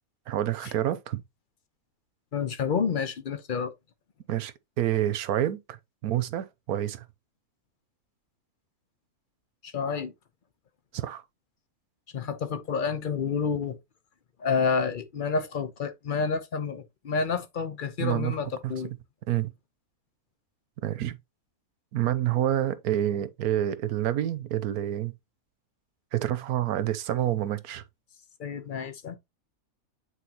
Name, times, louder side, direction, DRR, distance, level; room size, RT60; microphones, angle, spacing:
voice 1, 0.3-1.2 4.3-5.6 6.0-7.0 10.9-11.2 18.0-18.4 19.3-19.5 20.8-21.2 21.9-25.1 26.1-27.8, right 12 dB, 90° right, 1.2 m, -28 dB
voice 2, 2.3-3.7 9.6-10.1 12.1-13.8 14.4-18.9 28.4-29.2, left 5 dB, 45° left, 0.8 m, -29 dB
8.3 x 4.4 x 2.9 m
omnidirectional pair, 1.5 m